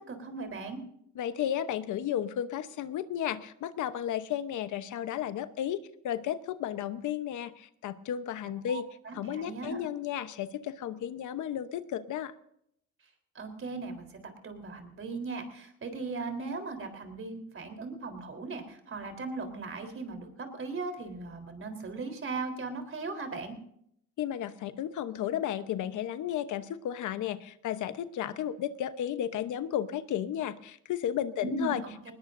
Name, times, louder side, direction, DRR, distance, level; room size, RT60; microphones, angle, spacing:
voice 1, 0.1-0.8 8.7-9.8 13.3-23.6 31.4-32.1, right 3 dB, 45° right, 6 dB, 3.8 m, -38 dB
voice 2, 1.2-8.8 9.1-12.3 24.2-31.8, left 10 dB, 80° left, 12 dB, 1.0 m, -33 dB
20.0 x 19.0 x 2.6 m, 0.70 s
cardioid pair, 90°, 30 cm